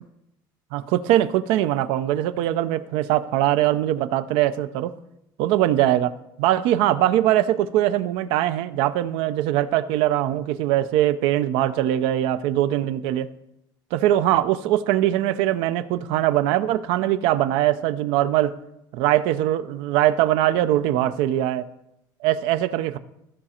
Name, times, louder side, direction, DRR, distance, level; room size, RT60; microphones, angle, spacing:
voice 1, 0.7-4.9 5.4-6.1 6.4-13.3 13.9-18.5 18.9-21.7 22.2-23.0, right 13 dB, 90° right, 14 dB, 0.5 m, -21 dB
14.5 x 4.9 x 4.3 m, 0.84 s
cardioid pair, 150°, 9 cm